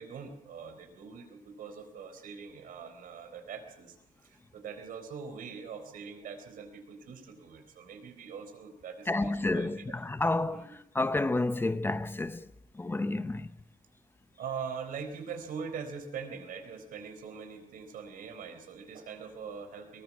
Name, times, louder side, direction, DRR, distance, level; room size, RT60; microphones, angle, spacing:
voice 1, 0.0-4.0 4.2-9.8 10.5-10.8 14.4-20.0, right 6 dB, 85° right, 4.0 m, -42 dB
voice 2, 9.1-12.5 12.7-13.5, left 2 dB, 15° left, 0.8 m, -30 dB
22.5 x 20.0 x 6.2 m
wide cardioid pair, 150°, 14 cm